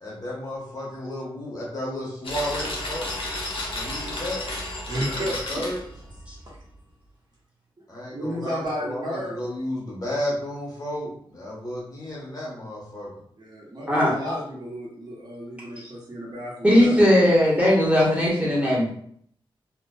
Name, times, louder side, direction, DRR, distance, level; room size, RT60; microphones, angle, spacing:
voice 1, 0.0-3.1 3.7-4.4 5.2-5.8 7.9-13.1, left 1 dB, 40° left, -5 dB, 1.1 m, -32 dB
sound 1, 2.2-6.6, left 1 dB, 70° left, 0.7 m, -32 dB
voice 2, 4.9-5.7 8.1-9.4 13.4-17.0, equal, 45° right, -4 dB, 0.9 m, -32 dB
voice 3, 16.6-18.9, equal, 15° right, -6 dB, 1.2 m, -19 dB
2.5 x 2.2 x 2.2 m, 0.63 s
cardioid pair, 60°, 10 cm